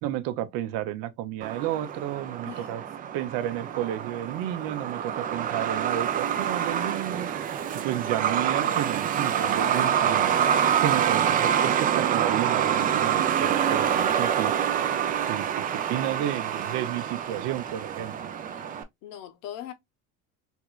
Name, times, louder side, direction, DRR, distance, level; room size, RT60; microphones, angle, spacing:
voice 1, 0.0-2.8 3.1-10.4 10.8-15.0 15.3-18.1, right 12 dB, 65° right, 0.6 m, -32 dB
Truck, 1.4-18.8, right 9 dB, 25° right, 0.3 m, -26 dB
voice 2, 2.4-2.8 6.5-6.6 19.0-19.7, left 11 dB, 70° left, 0.9 m, -40 dB
3.5 x 3.0 x 2.2 m
cardioid pair, 145°, 36 cm